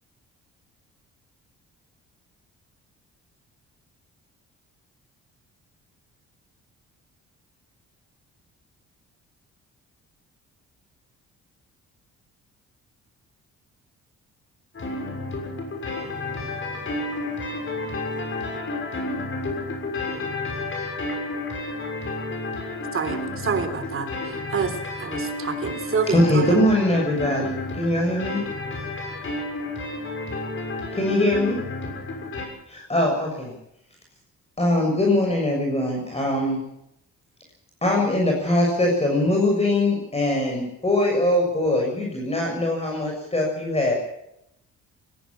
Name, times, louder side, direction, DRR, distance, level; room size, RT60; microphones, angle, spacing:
sound 1, 14.7-32.5, left 2 dB, 40° left, 6.8 m, -31 dB
voice 1, 16.0-18.6, right 4 dB, 25° right, 8 dB, 2.0 m, -52 dB
voice 2, 22.9-26.6, right 5 dB, 45° right, 9 dB, 3.4 m, -28 dB
voice 3, 26.1-28.4 30.9-31.6 32.7-33.5 34.6-36.6 37.8-43.9, left 1 dB, 20° left, 0 dB, 6.8 m, -22 dB
18.5 x 16.5 x 8.7 m, 0.80 s
cardioid pair, 90°, 30 cm